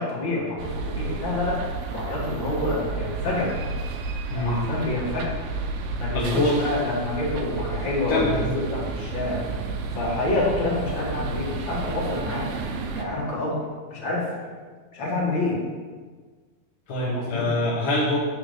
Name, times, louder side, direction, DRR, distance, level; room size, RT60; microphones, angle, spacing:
voice 1, 0.0-3.6 4.4-5.4 6.0-9.4 9.9-12.5 12.9-13.6 13.9-14.3 14.9-15.6 17.0-17.4, left 2 dB, 40° left, -5 dB, 2.0 m, -27 dB
sound 1, 0.6-13.1, right 3 dB, 80° right, 2.4 m, -32 dB
voice 2, 6.1-6.6 8.1-8.5 16.9-18.2, left 1 dB, 75° left, -6 dB, 1.1 m, -24 dB
9.1 x 4.8 x 5.2 m, 1.5 s
omnidirectional pair, 4.6 m